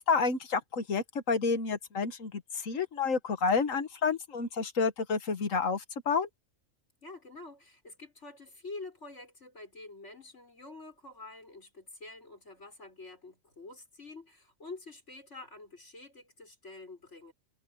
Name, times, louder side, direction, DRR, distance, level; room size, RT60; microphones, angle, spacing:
voice 1, 0.1-6.3, left 5 dB, 80° left, 1.8 m, -29 dB
voice 2, 7.0-17.3, left 3 dB, 60° left, 6.5 m, -47 dB
omnidirectional pair, 1.4 m